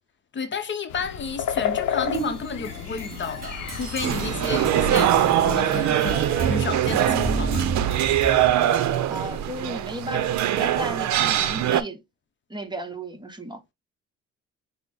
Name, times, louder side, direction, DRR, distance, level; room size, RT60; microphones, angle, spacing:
voice 1, 0.3-7.7, left 5 dB, 40° left, 0.7 m, -32 dB
sound 1, 0.9-6.6, left 9 dB, 75° left, 0.7 m, -33 dB
sound 2, 2.0-8.5, right 4 dB, 30° right, 2.5 m, -31 dB
sound 3, 4.0-11.8, right 11 dB, 70° right, 0.6 m, -22 dB
voice 2, 9.1-12.0 12.5-13.6, right 1 dB, 15° right, 0.9 m, -34 dB
5.7 x 2.1 x 3.4 m
cardioid pair, 90°, 30 cm